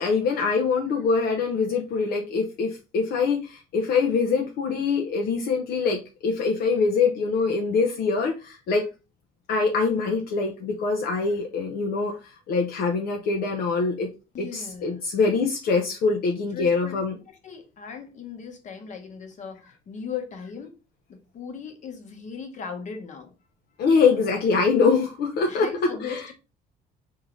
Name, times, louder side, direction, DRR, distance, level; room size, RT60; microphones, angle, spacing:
voice 1, 0.0-8.9 9.5-12.2 12.5-14.1 14.4-17.2 23.8-26.3, left 4 dB, 65° left, 0.6 m, -24 dB
voice 2, 14.3-15.1 16.5-20.7 21.1-23.3 24.2-24.4 25.5-26.3, left 6 dB, 45° left, 1.0 m, -38 dB
3.7 x 2.7 x 3.0 m
cardioid pair, 110°, 17 cm